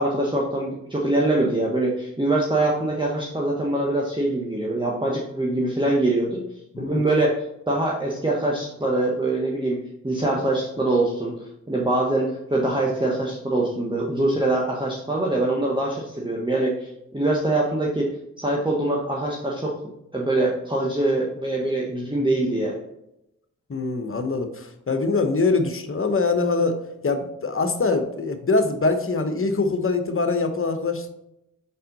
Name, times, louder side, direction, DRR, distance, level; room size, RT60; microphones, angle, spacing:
voice 1, 0.0-6.4 6.8-7.4 7.7-11.3 11.7-18.1 18.4-19.7 20.1-22.8, right 2 dB, 15° right, -3 dB, 1.5 m, -23 dB
voice 2, 23.7-26.8 27.0-31.1, left 3 dB, 40° left, 8 dB, 1.1 m, -23 dB
6.2 x 4.2 x 4.0 m, 0.84 s
supercardioid pair, 40°, 35 cm